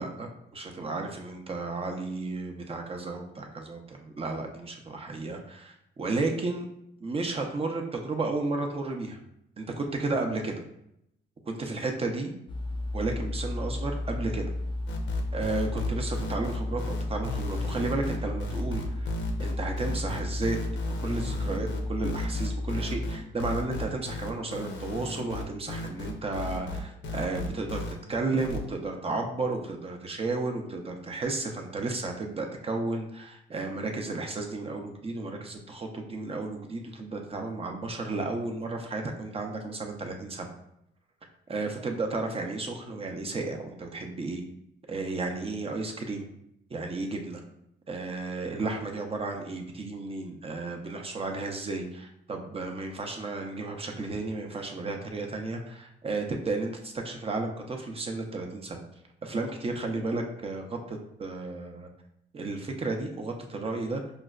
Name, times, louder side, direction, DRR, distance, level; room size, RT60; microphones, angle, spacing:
voice 1, 0.0-6.7 7.0-9.2 9.6-10.6 11.5-12.3 12.9-14.5 15.3-19.1 19.4-20.6 20.9-40.5 41.5-44.4 44.9-46.3 46.7-47.4 47.9-58.8 59.2-61.9 62.3-64.0, right 3 dB, 30° right, 2 dB, 0.5 m, -33 dB
sound 1, 12.5-23.1, left 1 dB, 25° left, 0.5 m, -33 dB
sound 2, 14.9-27.9 28.4-28.6, left 2 dB, 70° left, 0.6 m, -35 dB
4.9 x 2.1 x 2.3 m, 0.78 s
cardioid pair, 90°, 20 cm